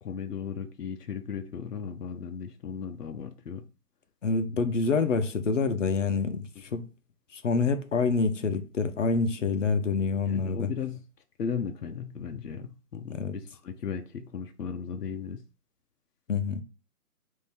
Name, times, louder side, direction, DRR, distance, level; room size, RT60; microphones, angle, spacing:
voice 1, 0.0-3.7 10.3-11.0 11.4-15.4, left 6 dB, 85° left, 0.8 m, -36 dB
voice 2, 4.2-6.9 7.3-10.7 13.1-13.4 16.3-16.6, left 4 dB, 55° left, 0.7 m, -27 dB
3.7 x 2.7 x 4.1 m
hypercardioid pair, 170°, 46 cm